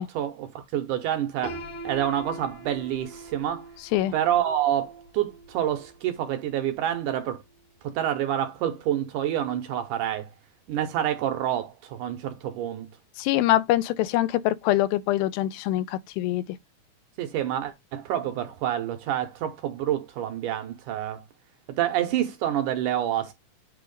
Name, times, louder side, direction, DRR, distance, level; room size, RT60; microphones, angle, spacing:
voice 1, 0.0-3.7 4.1-7.4 7.8-10.3 10.7-12.9 17.2-21.2 21.7-23.3, right 11 dB, 75° right, 2.0 m, -28 dB
Piano, 1.4-7.3, right 1 dB, 65° left, 2.2 m, -43 dB
voice 2, 13.2-16.4, left 14 dB, 85° left, 2.4 m, -24 dB
8.3 x 3.0 x 5.1 m
omnidirectional pair, 4.2 m